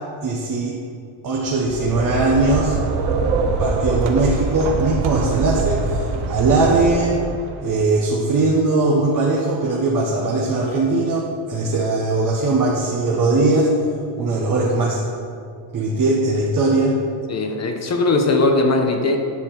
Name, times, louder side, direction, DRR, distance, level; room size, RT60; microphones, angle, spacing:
voice 1, 0.2-0.8 1.2-2.8 3.6-7.2 7.6-13.7 14.2-15.0 15.7-17.0, right 2 dB, 40° right, -5 dB, 1.4 m, -20 dB
sound 1, 1.5-7.5, right 4 dB, 75° right, 1.1 m, -24 dB
voice 2, 17.3-19.2, left 2 dB, 35° left, 4 dB, 1.1 m, -19 dB
9.9 x 6.9 x 5.9 m, 2.3 s
cardioid pair, 145°, 48 cm